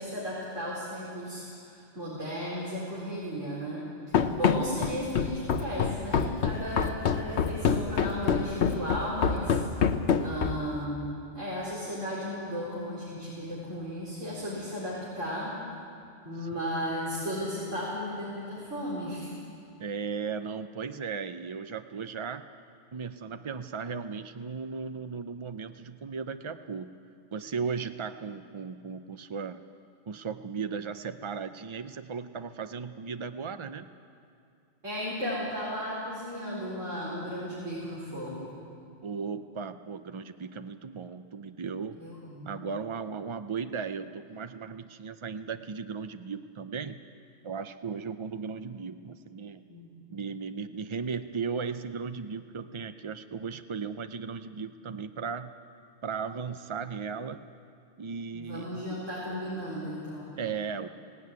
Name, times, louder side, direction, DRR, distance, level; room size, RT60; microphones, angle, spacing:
voice 1, 0.0-9.9 10.2-11.0 11.3-15.6 16.2-19.3 34.8-38.5 42.0-42.5 49.7-49.9 58.3-60.3, equal, 85° right, -6 dB, 4.9 m, -35 dB
Run, 4.1-10.8, left 6 dB, 65° left, 1.1 m, -26 dB
voice 2, 19.8-22.5 22.9-26.9 27.3-29.6 30.1-33.9 39.0-42.1 42.4-47.0 47.4-49.6 50.1-55.6 56.0-57.4 58.0-59.0 60.4-60.9, right 5 dB, 50° right, 9 dB, 0.3 m, -36 dB
18.5 x 17.0 x 9.5 m, 2.5 s
omnidirectional pair, 1.3 m